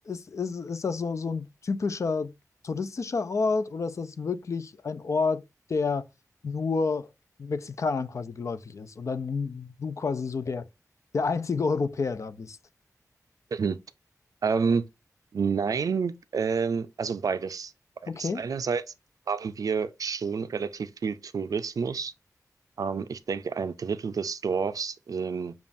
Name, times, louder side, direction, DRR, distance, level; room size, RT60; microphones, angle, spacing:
voice 1, 0.1-2.3 2.6-5.4 5.7-6.0 6.4-7.1 7.4-10.7 11.1-12.6 18.1-18.4, left 4 dB, 55° left, 0.4 m, -29 dB
voice 2, 14.4-14.8 15.3-17.7 18.0-18.8 19.3-22.1 22.8-25.5, right 5 dB, 70° right, 0.4 m, -29 dB
7.0 x 2.4 x 2.5 m
wide cardioid pair, 125°, 6 cm